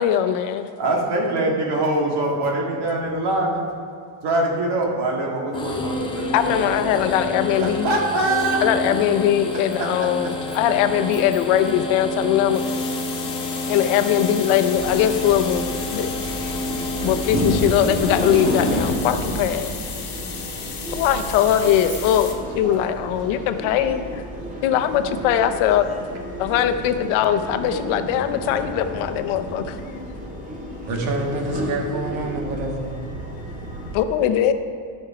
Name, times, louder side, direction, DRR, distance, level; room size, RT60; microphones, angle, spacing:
voice 1, 0.0-0.7 6.3-7.9 8.6-12.6 13.7-16.1 17.0-19.7 20.9-24.0 24.6-25.9 26.4-30.0 33.9-34.5, left 10 dB, 85° left, 9 dB, 0.8 m, -21 dB
voice 2, 0.8-3.6 4.2-7.1 7.5-9.0 9.8-9.9 10.5-10.6 22.5-23.1 23.5-23.8 26.4-26.5, right 2 dB, 55° right, -1 dB, 2.0 m, -24 dB
sound 1, 5.5-18.9, left 2 dB, 10° left, 0.8 m, -29 dB
sound 2, 12.5-22.3, left 6 dB, 45° left, 1.5 m, -35 dB
sound 3, 14.7-34.0, equal, 15° right, 1.9 m, -31 dB
voice 3, 30.9-32.9, right 2 dB, 75° right, 1 dB, 1.9 m, -26 dB
14.0 x 5.6 x 4.9 m, 2.2 s
cardioid pair, 155°, 47 cm